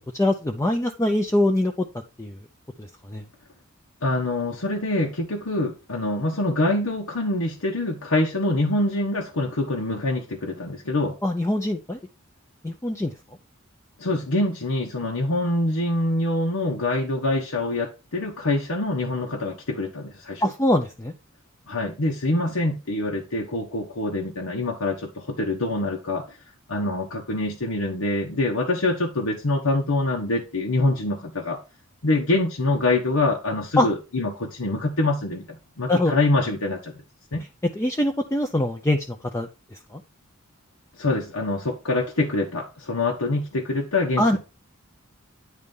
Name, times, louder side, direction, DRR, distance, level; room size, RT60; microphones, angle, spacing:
voice 1, 0.2-1.7 2.2-2.3 3.1-3.2 11.2-12.0 12.6-13.1 20.4-21.1 33.8-33.9 35.9-36.1 37.8-39.5 39.9-40.0 44.2-44.4, left 1 dB, 15° left, 0.5 m, -23 dB
voice 2, 4.0-11.2 14.0-20.5 21.7-26.2 26.7-31.6 32.0-36.9 37.3-37.4 41.0-44.4, left 2 dB, 90° left, 1.2 m, -25 dB
9.6 x 3.4 x 5.3 m
head